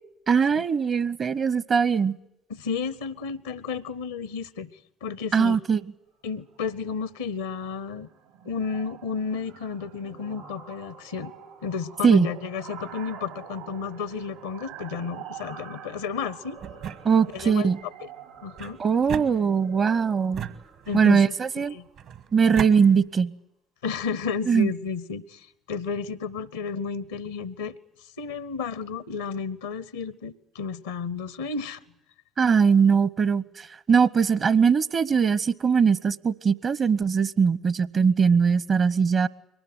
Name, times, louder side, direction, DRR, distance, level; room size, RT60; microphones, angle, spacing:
voice 1, 0.3-2.2 5.3-5.8 12.0-12.3 17.0-17.8 18.8-20.4 20.9-21.7 22.3-23.3 24.5-24.7 32.4-33.4 33.9-39.3, right 6 dB, 45° right, 21 dB, 0.9 m, -21 dB
voice 2, 2.5-4.7 5.0-5.6 6.2-8.1 8.4-11.3 11.6-16.6 17.3-17.7 18.0-18.1 18.4-18.8 20.9-21.9 23.8-27.7 28.2-31.8, left 5 dB, 80° left, 20 dB, 0.8 m, -32 dB
sound 1, 6.4-6.7 7.0-7.3 7.5-22.4, right 7 dB, 80° right, 3.6 m, -46 dB
sound 2, 16.6-17.6 18.6-19.8 20.3-21.2 22.0-22.8, right 9 dB, 65° right, 1.6 m, -36 dB
23.0 x 19.0 x 9.4 m, 0.78 s
figure-of-eight pair, 50°, 0 cm